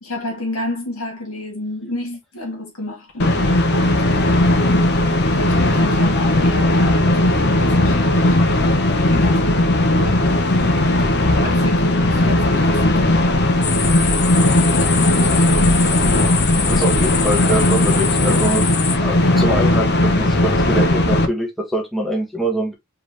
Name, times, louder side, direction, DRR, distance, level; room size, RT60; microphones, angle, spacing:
voice 1, 0.0-8.4 9.0-10.8 11.3-15.8 16.5-16.8, left 1 dB, 75° left, 2.3 m, -31 dB
sound 1, 3.2-21.3, left 1 dB, 50° left, 0.8 m, -17 dB
sound 2, 13.6-19.0, left 7 dB, 20° left, 0.3 m, -25 dB
voice 2, 16.6-18.7 19.0-22.7, right 1 dB, ahead, 1.0 m, -24 dB
4.7 x 3.2 x 3.1 m
head